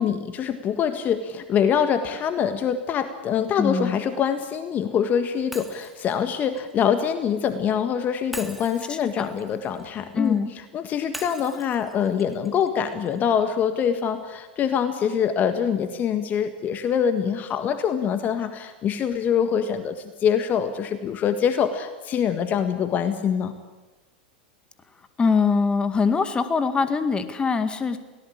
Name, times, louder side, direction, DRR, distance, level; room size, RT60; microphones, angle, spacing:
voice 1, 0.0-23.5, left 8 dB, 35° left, 9 dB, 1.6 m, -24 dB
voice 2, 3.6-4.0 8.9-9.3 10.1-10.5 25.2-28.0, left 5 dB, 20° left, 10 dB, 1.9 m, -23 dB
Shatter, 5.5-7.6 8.3-10.4 11.1-13.2, equal, ahead, 2.3 m, -43 dB
23.5 x 18.0 x 8.7 m, 1.2 s
hypercardioid pair, 100°, 5 cm